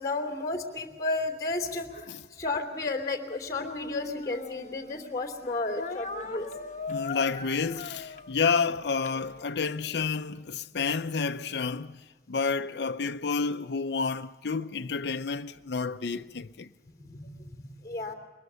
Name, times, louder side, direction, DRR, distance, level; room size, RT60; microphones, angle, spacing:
voice 1, 0.0-6.5 16.8-18.1, left 2 dB, 20° left, 2.8 m, -33 dB
Speech, 3.5-5.1 5.7-9.8, left 3 dB, 45° left, 1.2 m, -40 dB
voice 2, 6.9-16.7, left 5 dB, 70° left, 0.6 m, -30 dB
22.5 x 21.0 x 6.8 m
head